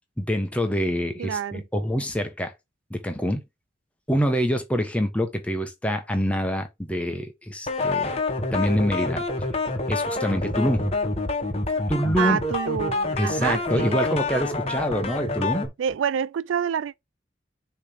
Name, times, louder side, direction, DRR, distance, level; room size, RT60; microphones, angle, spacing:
voice 1, 0.2-2.5 2.9-3.4 4.1-8.1 8.5-9.2 9.9-10.9 11.9-12.4 13.2-15.7, equal, 5° left, 1.2 m, -25 dB
voice 2, 1.2-1.6 12.2-14.0 15.8-17.0, right 7 dB, 90° right, 0.3 m, -27 dB
sound 1, 7.7-15.7, left 2 dB, 30° left, 1.3 m, -27 dB
6.8 x 3.4 x 5.8 m
head